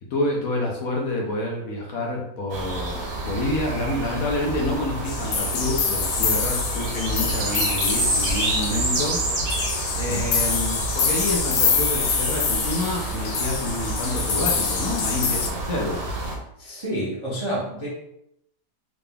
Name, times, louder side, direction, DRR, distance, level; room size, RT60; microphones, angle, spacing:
voice 1, 0.1-9.3 10.0-16.1, left 2 dB, 65° left, -1 dB, 1.1 m, -28 dB
sound 1, 2.5-16.3, right 2 dB, 85° right, 1.5 m, -29 dB
sound 2, 5.1-15.5, left 5 dB, 85° left, 1.3 m, -26 dB
voice 2, 9.9-10.3 16.6-17.9, right 1 dB, 30° right, -7 dB, 0.5 m, -29 dB
3.8 x 3.4 x 2.3 m, 0.78 s
omnidirectional pair, 1.8 m